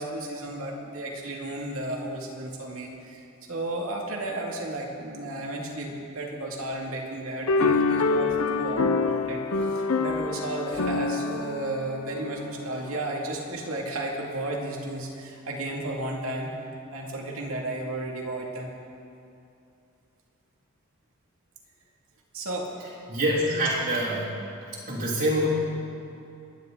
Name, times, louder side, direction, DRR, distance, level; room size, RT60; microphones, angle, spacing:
voice 1, 0.0-3.2 3.5-16.5 16.9-18.7 22.3-22.7, right 1 dB, 70° right, -1 dB, 2.4 m, -33 dB
sound 1, 7.5-13.0, left 3 dB, 85° left, 0.8 m, -26 dB
voice 2, 22.8-24.3 24.9-25.5, right 1 dB, 50° right, -11 dB, 3.2 m, -26 dB
29.5 x 11.0 x 4.0 m, 2.6 s
head